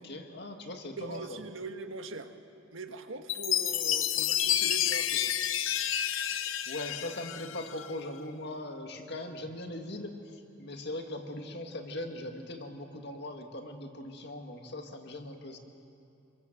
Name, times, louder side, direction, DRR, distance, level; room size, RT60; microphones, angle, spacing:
voice 1, 0.0-1.4 6.3-15.6, left 1 dB, 55° left, 4 dB, 2.1 m, -40 dB
voice 2, 1.0-2.3 2.7-5.3, right 3 dB, 75° right, 6 dB, 1.6 m, -41 dB
Chime, 3.3-7.9, left 10 dB, 80° left, 0.8 m, -30 dB
27.0 x 23.0 x 7.4 m, 2.6 s
head